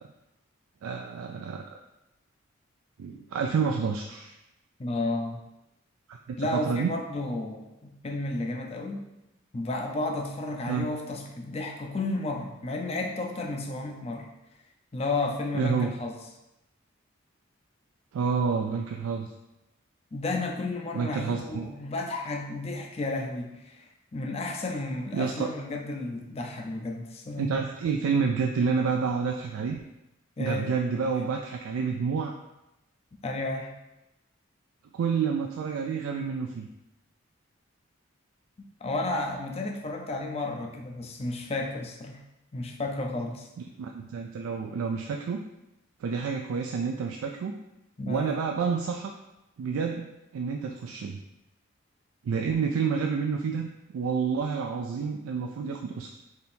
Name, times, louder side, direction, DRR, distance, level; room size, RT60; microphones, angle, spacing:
voice 1, 0.8-1.8 3.0-4.3 6.1-6.9 10.7-10.9 15.5-15.9 18.1-19.3 20.9-21.7 25.1-25.5 27.4-29.8 30.4-32.3 34.9-36.7 43.8-45.4 46.0-47.5 48.1-49.1 49.6-51.2 52.2-56.1, right 5 dB, 85° right, 2 dB, 0.3 m, -29 dB
voice 2, 4.8-5.4 6.4-9.1 9.5-14.3 14.9-16.2 20.1-27.6 30.4-30.7 33.2-33.7 38.8-42.2 42.5-43.5 48.0-48.4, left 2 dB, 30° left, 1 dB, 0.4 m, -32 dB
3.5 x 2.8 x 4.2 m, 0.93 s
head